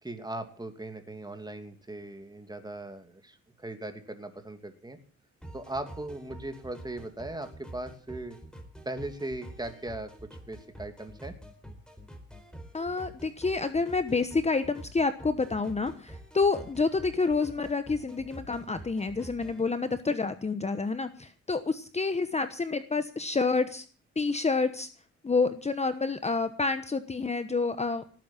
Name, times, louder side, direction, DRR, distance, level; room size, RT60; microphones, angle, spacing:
voice 1, 0.0-5.0 5.5-8.4 8.8-10.1 10.5-11.3, right 2 dB, 15° right, 7 dB, 2.8 m, -39 dB
sound 1, 5.4-19.6, right 1 dB, 5° left, 4.3 m, -47 dB
voice 2, 12.7-23.8 24.2-24.9 25.2-28.0, left 4 dB, 20° left, 10 dB, 1.1 m, -28 dB
18.0 x 9.1 x 7.3 m, 0.42 s
cardioid pair, 95°, 30 cm